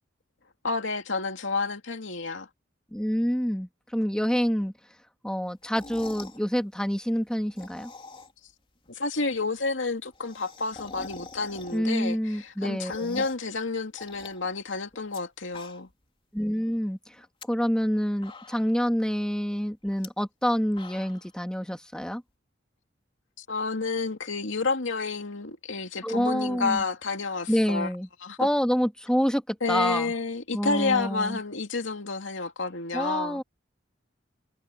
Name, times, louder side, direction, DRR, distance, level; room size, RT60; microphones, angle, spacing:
voice 1, 0.6-2.5 8.9-15.9 23.4-27.9 28.2-28.5 29.6-33.4, left 4 dB, 80° left, 2.7 m, -30 dB
voice 2, 2.9-4.7 5.2-7.9 11.7-13.2 16.3-17.0 17.5-22.2 26.0-26.8 27.5-28.1 28.4-30.1 30.5-31.4 32.9-33.4, equal, 5° left, 2.4 m, -27 dB
sound 1, 5.6-6.4 7.4-8.5 8.8-8.9 9.2-9.3 9.5-9.6 9.8-12.0 12.4-13.5 14.0-15.2 15.5-16.0 16.4-16.5 17.2-17.4 17.9-18.0 18.2-18.8 19.9-20.1 20.5-21.3, left 3 dB, 30° left, 3.5 m, -45 dB
head